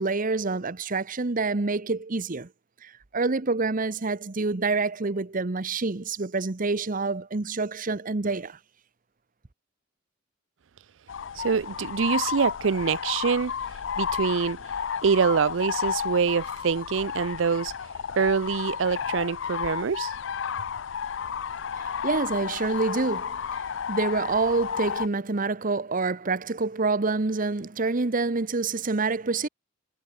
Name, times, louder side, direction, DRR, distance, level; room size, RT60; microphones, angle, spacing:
voice 1, 0.0-2.5 2.8-8.6 21.7-29.5, right 3 dB, 45° right, 1.0 m, -27 dB
sound 1, 11.1-25.1, left 7 dB, 75° left, 0.5 m, -32 dB
voice 2, 11.3-14.7 15.0-17.7 18.1-20.1, right 6 dB, 80° right, 0.5 m, -25 dB
head